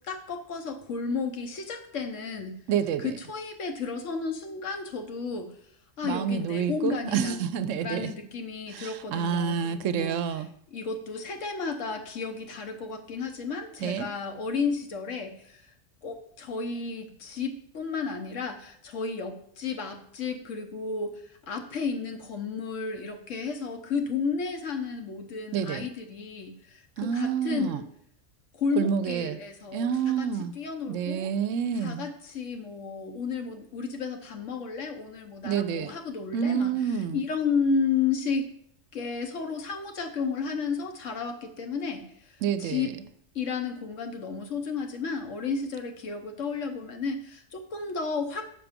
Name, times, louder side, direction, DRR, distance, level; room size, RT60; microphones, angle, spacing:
voice 1, 0.1-2.6 3.0-5.5 6.0-7.4 7.8-10.2 10.7-15.6 16.0-21.1 21.5-27.8 28.5-30.3 30.5-31.3 31.8-36.7 37.1-38.5 38.9-42.9 43.3-48.4, left 5 dB, 70° left, 5 dB, 1.3 m, -32 dB
voice 2, 2.7-3.1 6.0-8.1 8.7-10.5 13.8-14.1 25.5-25.9 27.0-27.8 28.8-29.4 29.7-30.5 30.9-32.0 35.4-35.9 36.3-37.2 42.4-42.9, right 7 dB, 75° right, 11 dB, 0.9 m, -28 dB
6.6 x 6.0 x 5.1 m, 0.67 s
omnidirectional pair, 1.4 m